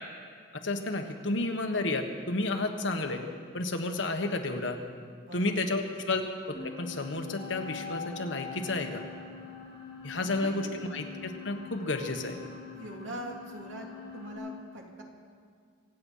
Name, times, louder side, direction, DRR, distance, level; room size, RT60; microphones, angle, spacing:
voice 1, 0.6-3.2 3.5-4.8 5.3-6.2 6.5-9.0 10.0-12.4, left 2 dB, 80° left, 4 dB, 1.4 m, -31 dB
voice 2, 5.2-5.8 10.2-10.6 12.7-13.9 14.1-15.0, right 1 dB, 85° right, 0 dB, 2.4 m, -42 dB
sound 1, 6.5-14.4, left 6 dB, 30° left, 5.4 m, -44 dB
25.0 x 8.9 x 5.6 m, 2.1 s
head